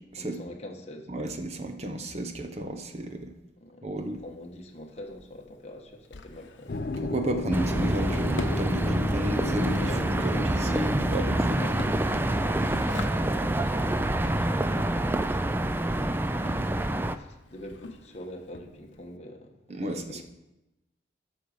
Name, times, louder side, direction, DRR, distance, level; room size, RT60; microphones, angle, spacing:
voice 1, 0.2-1.1 3.6-6.8 9.8-11.1 11.5-20.2, left 1 dB, 35° left, 1 dB, 1.2 m, -44 dB
voice 2, 1.1-3.3 3.8-4.2 7.0-11.6 19.7-20.2, right 1 dB, 35° right, 6 dB, 0.7 m, -32 dB
Drawer open or close, 4.0-19.2, left 3 dB, 80° left, 0.8 m, -45 dB
sound 1, 6.7-13.0, left 2 dB, 50° left, 0.5 m, -36 dB
sound 2, 7.5-17.2, right 1 dB, 10° right, 0.3 m, -27 dB
8.2 x 6.3 x 6.5 m, 0.98 s
head